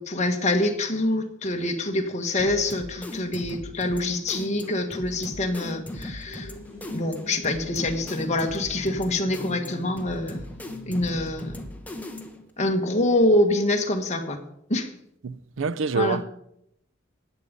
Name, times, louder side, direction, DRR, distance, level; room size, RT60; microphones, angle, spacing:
voice 1, 0.0-6.5 6.9-10.4 10.9-11.7 12.6-14.4 14.7-14.9 15.9-16.2, left 1 dB, 35° left, 1.6 m, -25 dB
sound 1, 2.4-12.5, left 1 dB, 10° left, 1.4 m, -38 dB
sound 2, 6.2-11.6, left 1 dB, 10° right, 4.4 m, -44 dB
voice 2, 15.2-16.2, right 4 dB, 75° right, 0.5 m, -26 dB
15.0 x 9.8 x 5.2 m
head